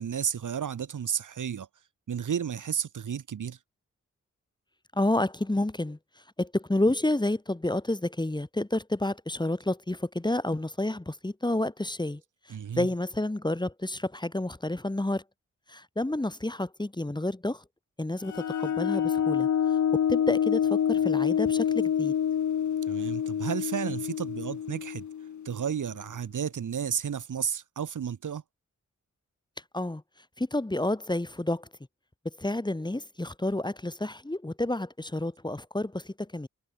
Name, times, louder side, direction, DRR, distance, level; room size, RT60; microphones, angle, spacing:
voice 1, 0.0-1.7 2.1-3.6 12.5-12.9 22.9-25.1 25.4-28.4, right 8 dB, 80° right, 1.5 m, -32 dB
voice 2, 4.9-6.0 6.4-12.2 12.8-15.2 15.7-17.6 18.0-19.5 20.1-22.1 29.7-30.0 30.4-31.7 32.4-36.5, left 1 dB, 15° left, 1.5 m, -29 dB
sound 1, 18.2-25.7, left 9 dB, 70° left, 0.8 m, -27 dB
cardioid pair, 60°, 30 cm